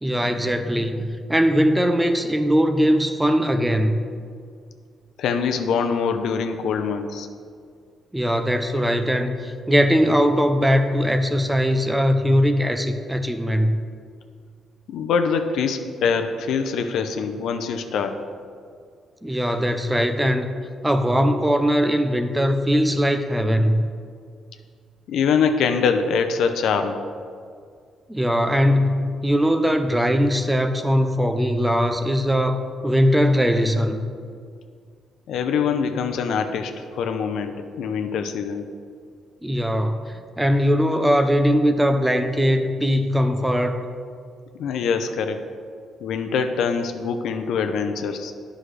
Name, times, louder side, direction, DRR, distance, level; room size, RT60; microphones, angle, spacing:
voice 1, 0.0-4.0 8.1-13.8 19.2-20.5 20.8-23.8 28.1-34.0 39.4-43.9, equal, 10° right, 8 dB, 0.5 m, -20 dB
voice 2, 5.2-7.3 14.9-18.2 25.1-27.0 35.3-38.7 44.5-45.5 46.0-48.3, left 6 dB, 75° left, 7 dB, 0.5 m, -24 dB
9.8 x 6.2 x 3.2 m, 2.2 s
cardioid pair, 90°, 0 cm